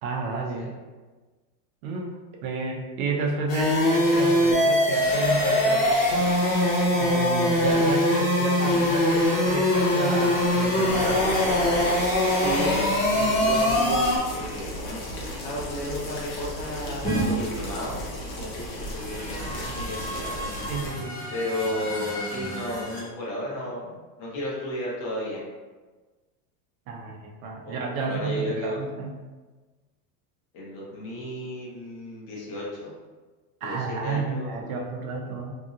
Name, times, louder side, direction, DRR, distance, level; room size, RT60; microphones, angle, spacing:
voice 1, 0.0-0.7 1.8-5.9 6.9-11.3 20.7-21.2 26.9-29.1 33.6-35.5, right 4 dB, 65° right, 0 dB, 0.6 m, -31 dB
sound 1, 3.5-14.2, left 1 dB, 65° left, 1.1 m, -22 dB
sound 2, 10.9-20.9, equal, 90° left, 1.0 m, -35 dB
voice 2, 12.3-15.0 15.4-20.5 21.3-25.4 27.6-28.8 30.5-32.9 33.6-34.8, left 1 dB, 40° left, -6 dB, 0.9 m, -33 dB
sound 3, 17.0-17.2 18.6-23.0, right 1 dB, 10° left, 0.4 m, -33 dB
2.7 x 2.6 x 2.5 m, 1.3 s
supercardioid pair, 160°, 47 cm